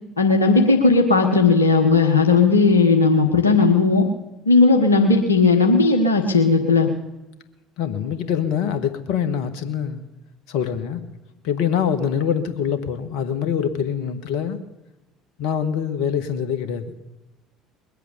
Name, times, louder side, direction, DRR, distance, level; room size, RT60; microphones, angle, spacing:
voice 1, 0.2-4.0 4.5-6.9, left 4 dB, 90° left, 4 dB, 1.2 m, -16 dB
voice 2, 7.8-10.0 10.5-11.0 11.4-14.6 15.4-16.9, left 8 dB, 65° left, 9 dB, 1.4 m, -24 dB
21.0 x 8.4 x 7.0 m, 1.0 s
figure-of-eight pair, 60°, 0 cm